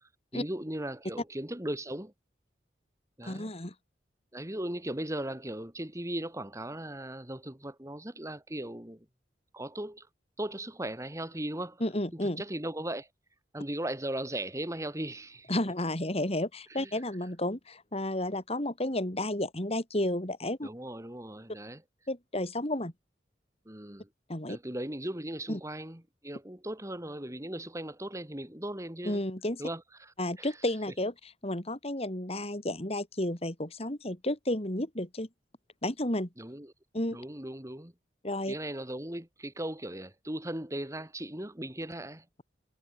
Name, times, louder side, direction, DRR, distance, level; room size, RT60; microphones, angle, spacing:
voice 1, 0.0-2.1 3.2-3.5 4.3-9.1 9.5-10.1 10.4-11.8 12.2-13.1 13.5-15.5 16.7-16.9 20.6-21.8 23.7-24.1 24.5-29.2 29.6-30.5 36.4-36.7 37.1-37.9 38.5-42.2, right 1 dB, 15° right, 2.5 m, -38 dB
voice 2, 3.2-3.7 11.8-12.4 15.5-20.7 22.1-22.9 24.3-24.6 25.5-25.6 29.0-29.6 30.2-35.3 35.8-36.3 36.9-37.2 38.2-38.5, left 1 dB, 35° left, 3.4 m, -32 dB
head